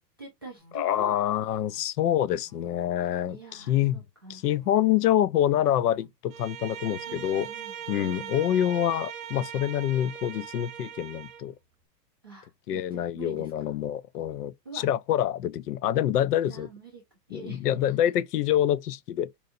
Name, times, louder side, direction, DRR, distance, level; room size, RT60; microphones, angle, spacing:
voice 1, 0.2-1.2 3.3-4.4 7.0-8.3 12.2-13.7 14.6-14.8 16.5-17.0 17.3-17.7, right 4 dB, 15° right, 0.4 m, -45 dB
sound 1, 0.6-0.7 1.4-1.8 2.4-2.8 3.5-3.9 4.6-5.0 5.6-6.1 6.7-7.1 7.8-8.1, left 1 dB, 10° left, 0.9 m, -55 dB
voice 2, 0.7-4.0 4.3-7.5 7.9-11.5 12.7-16.7 17.3-19.3, left 11 dB, 70° left, 0.6 m, -26 dB
Bowed string instrument, 6.3-11.5, right 9 dB, 55° right, 0.6 m, -40 dB
4.4 x 2.7 x 2.6 m
supercardioid pair, 180°, 49 cm